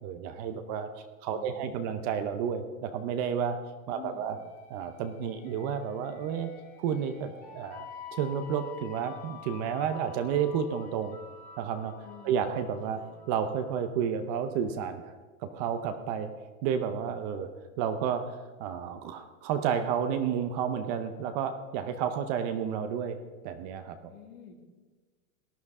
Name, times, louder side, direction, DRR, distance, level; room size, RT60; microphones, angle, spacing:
voice 1, 0.0-3.6 3.9-4.4 4.7-6.5 6.8-11.2 11.6-12.0 12.2-13.0 13.3-15.1 15.4-16.3 16.6-17.5 17.8-23.2 23.4-24.1, right 8 dB, 30° right, 9 dB, 0.6 m, -31 dB
voice 2, 1.3-2.0 3.9-4.4 12.0-12.4 12.9-13.1 24.1-24.5, left 8 dB, 75° left, 4 dB, 2.4 m, -49 dB
sound 1, 4.3-13.9, left 7 dB, 20° left, 2.3 m, -49 dB
18.5 x 12.0 x 3.6 m, 1.3 s
supercardioid pair, 170°, 42 cm